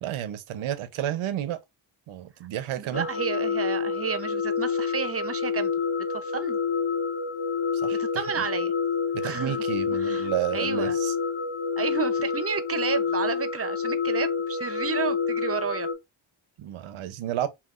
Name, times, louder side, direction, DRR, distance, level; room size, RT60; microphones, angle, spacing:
voice 1, 0.0-1.6 2.1-3.1 7.7-8.2 9.1-11.1 16.6-17.5, right 11 dB, 80° right, 0.8 m, -31 dB
voice 2, 2.8-5.7 6.1-6.6 8.0-8.7 9.2-9.5 10.0-10.9 11.8-15.9, right 6 dB, 30° right, 0.8 m, -31 dB
sound 1, 2.9-15.9, left 5 dB, 65° left, 1.4 m, -28 dB
5.6 x 2.5 x 2.5 m
cardioid pair, 75°, 48 cm